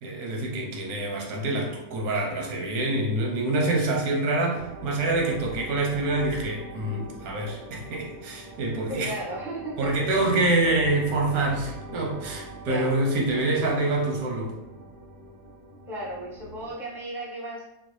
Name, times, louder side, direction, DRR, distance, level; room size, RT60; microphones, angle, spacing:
voice 1, 0.0-9.1 9.8-14.5, right 2 dB, 90° right, 0 dB, 1.2 m, -26 dB
sound 1, 4.5-16.7, equal, 55° right, 0.6 m, -42 dB
voice 2, 8.9-10.3 12.6-12.9 15.9-17.6, right 1 dB, ahead, -5 dB, 0.6 m, -35 dB
3.7 x 2.2 x 3.1 m, 0.90 s
omnidirectional pair, 1.5 m